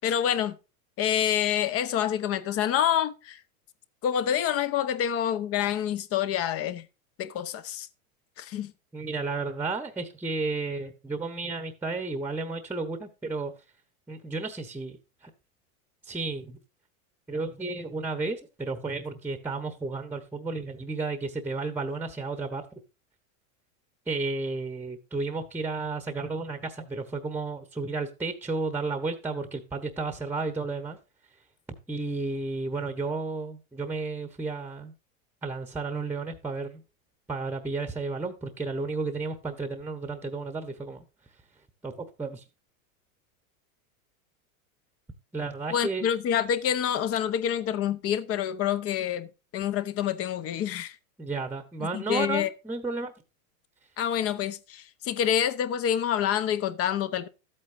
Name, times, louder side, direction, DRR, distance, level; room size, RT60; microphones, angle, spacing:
voice 1, 0.0-0.6 1.0-3.4 4.0-6.9 7.2-7.9 8.4-8.7 45.7-51.0 51.8-52.5 54.0-57.3, left 9 dB, 35° left, 0.9 m, -27 dB
voice 2, 8.9-13.5 14.1-15.0 16.0-16.6 17.3-22.6 24.1-31.0 31.9-34.9 35.4-36.8 37.3-41.0 41.8-41.9 42.2-42.4 45.3-46.1 51.2-53.1, right 3 dB, 5° right, 1.1 m, -32 dB
12.5 x 8.6 x 2.6 m
supercardioid pair, 125°, 43 cm